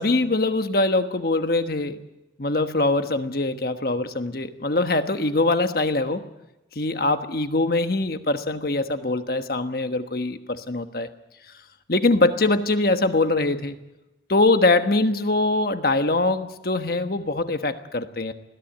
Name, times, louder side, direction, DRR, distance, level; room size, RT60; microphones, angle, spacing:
voice 1, 0.0-2.0 2.4-6.2 6.8-11.1 11.9-13.8 14.3-18.3, left 2 dB, 55° left, 8 dB, 1.3 m, -23 dB
20.5 x 15.0 x 9.0 m, 0.96 s
head